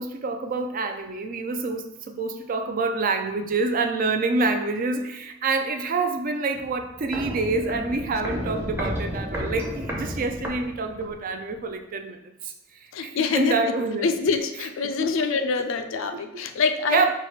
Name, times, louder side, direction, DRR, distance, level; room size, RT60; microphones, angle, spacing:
voice 1, 0.0-12.5 13.0-14.1 15.0-15.3 16.9-17.1, right 3 dB, 40° right, 6 dB, 0.4 m, -27 dB
Walk footsteps, 6.5-11.2 11.5-11.6, equal, 10° right, 0.7 m, -32 dB
voice 2, 12.9-13.7 14.0-17.1, left 4 dB, 65° left, 7 dB, 0.4 m, -25 dB
4.7 x 2.4 x 4.4 m, 0.89 s
head